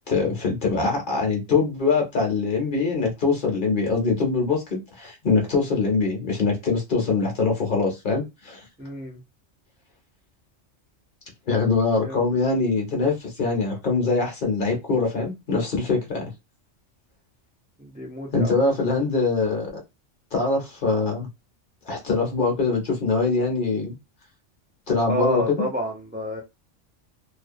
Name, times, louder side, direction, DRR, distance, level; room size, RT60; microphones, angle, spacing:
voice 1, 0.1-8.6 11.5-16.3 18.3-19.7 20.3-21.3 21.9-23.9 24.9-25.7, left 4 dB, 50° left, 0.8 m, -23 dB
voice 2, 8.8-9.2 12.0-12.2 17.8-18.5 25.1-26.4, right 1 dB, 15° right, 0.3 m, -29 dB
2.5 x 2.0 x 2.5 m
omnidirectional pair, 1.3 m